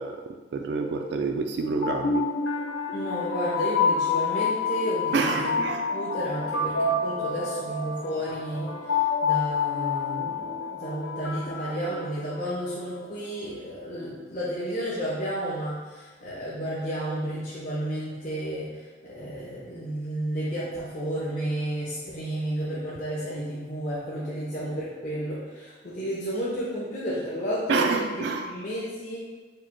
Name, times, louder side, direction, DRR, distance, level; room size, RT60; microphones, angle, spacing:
voice 1, 0.0-2.3 5.1-5.9 27.7-28.5, right 4 dB, 65° right, 4 dB, 0.3 m, -27 dB
sound 1, 1.6-12.7, left 4 dB, 85° left, 0.5 m, -28 dB
voice 2, 2.9-5.5 5.9-29.2, equal, 45° left, -8 dB, 0.8 m, -32 dB
4.8 x 2.2 x 4.3 m, 1.3 s
head